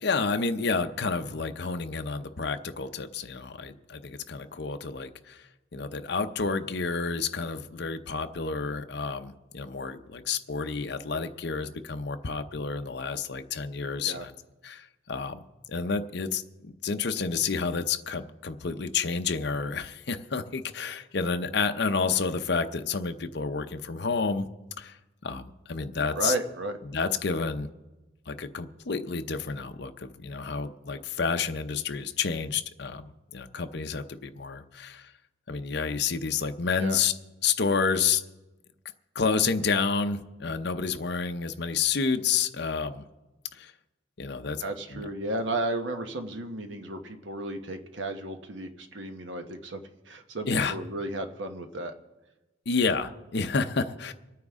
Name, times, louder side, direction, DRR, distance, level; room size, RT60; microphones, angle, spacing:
voice 1, 0.0-5.4 5.7-14.3 14.6-15.4 15.7-24.5 24.8-25.0 25.2-26.3 26.9-27.7 28.3-35.1 35.5-37.1 37.4-38.2 39.1-43.0 43.6-43.7 44.2-44.6 44.9-45.1 50.5-50.8 52.7-54.1, left 5 dB, 60° left, 7 dB, 0.7 m, -30 dB
voice 2, 26.2-26.8 36.8-37.0 44.6-51.9, right 1 dB, 90° right, 6 dB, 1.2 m, -33 dB
25.5 x 9.2 x 3.7 m, 1.1 s
head